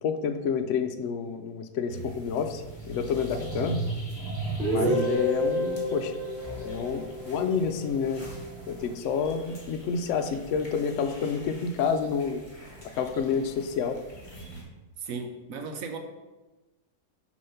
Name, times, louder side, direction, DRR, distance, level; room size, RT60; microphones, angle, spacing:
voice 1, 0.0-3.8 4.7-6.1 6.6-8.3 8.7-12.4 12.9-14.0, left 6 dB, 65° left, 7 dB, 0.8 m, -29 dB
sound 1, 1.9-14.6, equal, 20° left, 1.2 m, -46 dB
sound 2, 2.9-9.0, right 3 dB, 85° right, 1.2 m, -37 dB
Guitar, 4.6-8.4, left 1 dB, 25° right, 2.1 m, -30 dB
voice 2, 4.8-5.2 15.0-16.0, right 5 dB, 65° right, 5 dB, 1.0 m, -36 dB
6.6 x 3.1 x 5.6 m, 1.1 s
omnidirectional pair, 1.7 m